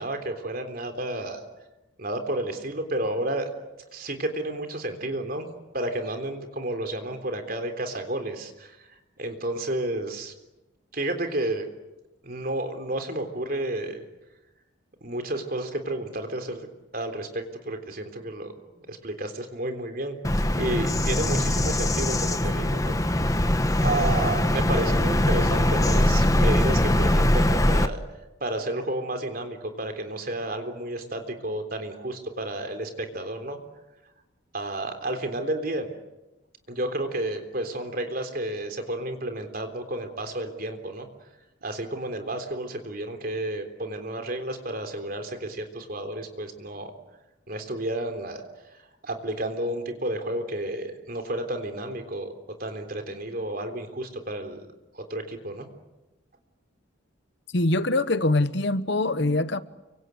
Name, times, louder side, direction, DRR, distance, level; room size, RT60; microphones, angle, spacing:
voice 1, 0.0-1.4 2.0-3.5 3.9-5.5 5.7-10.3 10.9-11.7 12.2-14.0 15.0-16.7 16.9-20.2 20.5-23.0 23.8-28.0 28.4-33.6 34.5-35.9 36.7-41.1 41.6-46.9 47.5-48.4 49.0-52.3 52.6-54.6 54.9-55.7, right 1 dB, 45° right, 3.6 m, -31 dB
Bird vocalization bird call bird song, 20.2-27.9, left 1 dB, 15° left, 1.0 m, -22 dB
voice 2, 57.5-59.6, left 2 dB, 55° left, 1.0 m, -23 dB
29.5 x 25.0 x 8.0 m
head